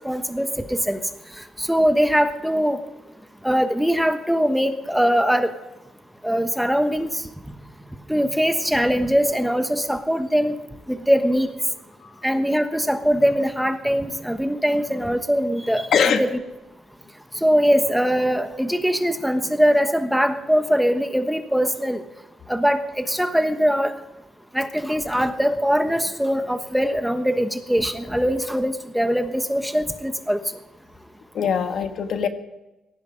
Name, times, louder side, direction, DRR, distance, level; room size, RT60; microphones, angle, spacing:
voice 1, 0.0-1.0 1.6-2.8 3.4-5.5 6.2-7.1 8.1-10.6 10.9-11.5 12.2-16.4 17.4-22.0 22.5-23.9 24.5-30.4, equal, ahead, 8 dB, 1.2 m, -21 dB
voice 2, 15.9-16.2 31.3-32.3, left 7 dB, 65° left, 7 dB, 1.5 m, -21 dB
18.0 x 15.0 x 5.2 m, 0.99 s
cardioid pair, 90°, 0 cm